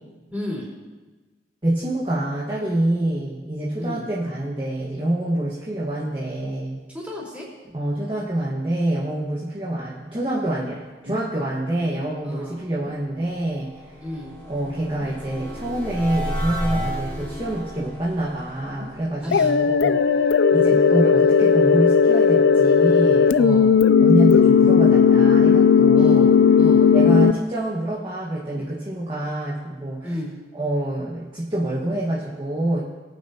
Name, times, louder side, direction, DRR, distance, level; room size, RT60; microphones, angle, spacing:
voice 1, 0.3-0.7 3.8-4.0 6.9-7.5 12.2-12.6 14.0-14.3 19.2-19.6 23.3-23.7 25.9-26.3 26.6-26.8 30.0-30.3, left 1 dB, 10° right, -5 dB, 4.1 m, -32 dB
voice 2, 1.6-6.8 7.7-13.7 14.5-20.2 20.5-26.3 26.9-30.1 30.5-32.8, right 1 dB, 25° right, -7 dB, 1.5 m, -26 dB
sound 1, 11.0-11.4 12.8-13.0 14.9-15.3 16.7-17.0 18.8-19.0 20.7-20.9 22.5-22.7 24.4-24.7 26.4-27.0 28.5-28.8 29.6-29.7, left 1 dB, 80° right, 3.1 m, -42 dB
sound 2, 13.0-20.1, equal, 10° left, 3.7 m, -33 dB
sound 3, 19.3-27.3, left 6 dB, 75° left, 0.4 m, -15 dB
22.0 x 9.1 x 2.9 m, 1.2 s
head